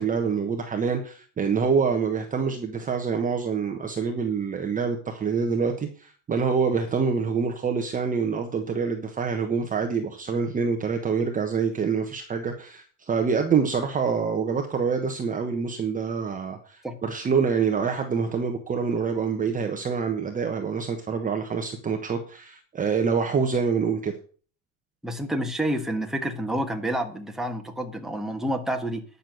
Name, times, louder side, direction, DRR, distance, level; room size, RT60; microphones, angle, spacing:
voice 1, 0.0-24.1, right 5 dB, 20° right, 4 dB, 1.2 m, -26 dB
voice 2, 25.0-29.0, right 1 dB, ahead, 3 dB, 1.5 m, -29 dB
10.0 x 6.8 x 7.8 m, 0.41 s
cardioid pair, 150°, 44 cm